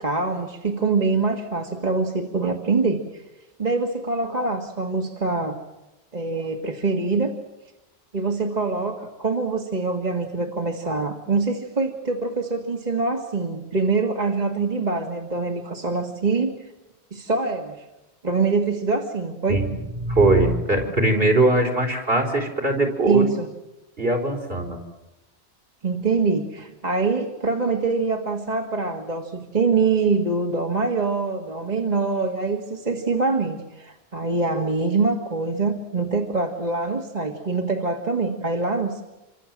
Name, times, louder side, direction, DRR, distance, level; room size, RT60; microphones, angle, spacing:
voice 1, 0.0-3.2 3.6-5.6 6.1-7.4 8.1-16.5 17.1-17.8 18.2-19.6 23.1-23.5 25.8-39.0, right 4 dB, 40° right, 2 dB, 2.0 m, -24 dB
voice 2, 19.5-23.2 24.0-24.8, right 2 dB, 65° right, 2 dB, 4.8 m, -21 dB
27.5 x 25.0 x 7.6 m, 0.99 s
omnidirectional pair, 1.1 m